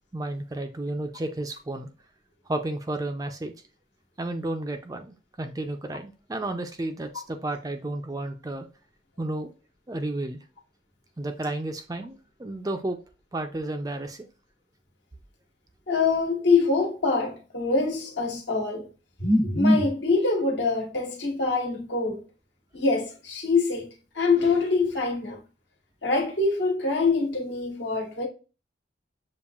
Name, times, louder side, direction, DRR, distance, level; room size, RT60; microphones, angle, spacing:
voice 1, 0.1-1.9 2.5-3.5 4.2-8.7 9.2-9.5 9.9-10.4 11.2-13.0 13.3-14.3, right 2 dB, 20° right, 0.4 m, -32 dB
voice 2, 15.9-18.9 19.2-22.2 22.7-23.9 24.1-25.4 26.0-28.3, left 3 dB, 70° left, 1.4 m, -24 dB
7.0 x 2.5 x 2.4 m
head